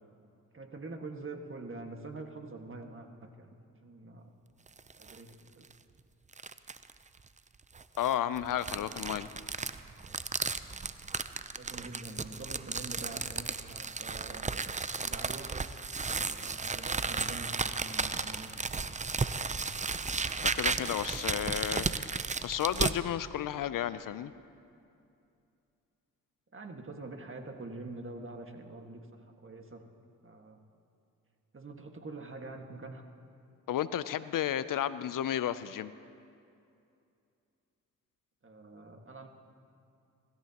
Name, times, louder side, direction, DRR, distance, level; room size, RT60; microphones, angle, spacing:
voice 1, 0.5-4.3 5.0-5.7 11.5-14.5 14.9-15.5 16.2-18.6 26.5-29.8 30.2-30.6 31.5-33.0 38.4-39.3, right 2 dB, 35° right, 4 dB, 1.8 m, -45 dB
sound 1, 4.7-5.2 5.6-5.7 6.3-6.9 7.7-23.0, right 4 dB, 20° right, 0.6 m, -34 dB
voice 2, 8.0-9.3 20.4-24.3 33.7-35.9, left 10 dB, 65° left, 15 dB, 0.6 m, -33 dB
25.0 x 13.5 x 3.0 m, 2.5 s
supercardioid pair, 50°, 35 cm